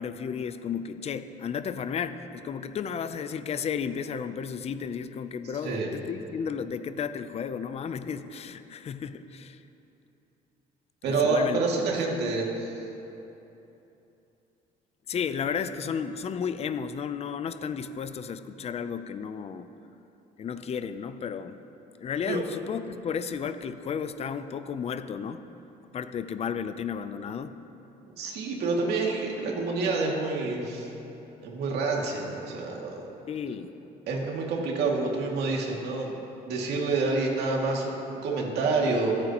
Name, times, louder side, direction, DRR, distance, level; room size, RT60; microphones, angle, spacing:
voice 1, 0.0-9.6 11.0-11.6 15.1-19.7 20.4-21.6 22.0-25.4 25.9-27.6 33.3-33.7, left 7 dB, 40° left, 10 dB, 0.6 m, -33 dB
voice 2, 11.0-12.7 22.3-22.4 28.0-30.9 31.4-33.1 34.1-36.2 36.5-39.3, right 3 dB, 75° right, -2 dB, 2.4 m, -28 dB
26.5 x 8.8 x 3.0 m, 3.0 s
cardioid pair, 110°, 17 cm